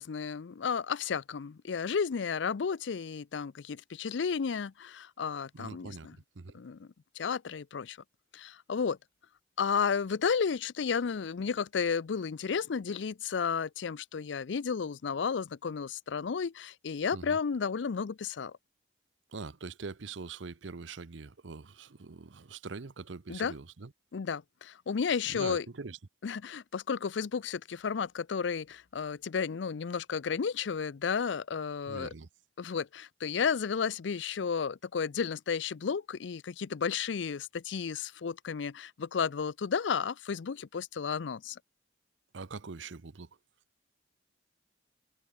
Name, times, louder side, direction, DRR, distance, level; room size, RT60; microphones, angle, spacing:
voice 1, 0.0-6.2 6.5-6.9 7.2-8.0 8.3-9.0 9.6-18.6 23.3-23.5 24.1-25.7 26.2-32.1 32.6-41.6, left 6 dB, 70° left, 0.5 m, -32 dB
voice 2, 5.5-6.6 17.1-17.4 19.3-23.9 25.3-26.0 31.9-32.3 42.3-43.3, right 4 dB, 80° right, 0.8 m, -43 dB
head